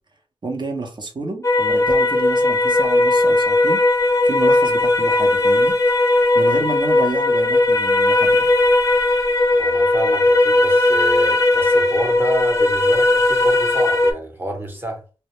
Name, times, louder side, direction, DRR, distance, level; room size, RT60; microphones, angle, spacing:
voice 1, 0.4-3.8 4.2-5.8 6.3-8.5, right 3 dB, 45° right, 0.8 m, -29 dB
sound 1, 1.4-14.1, left 2 dB, 30° left, 0.5 m, -17 dB
voice 2, 9.5-15.0, right 1 dB, 20° right, 0.9 m, -29 dB
2.2 x 2.1 x 2.9 m
cardioid pair, 60°, 10 cm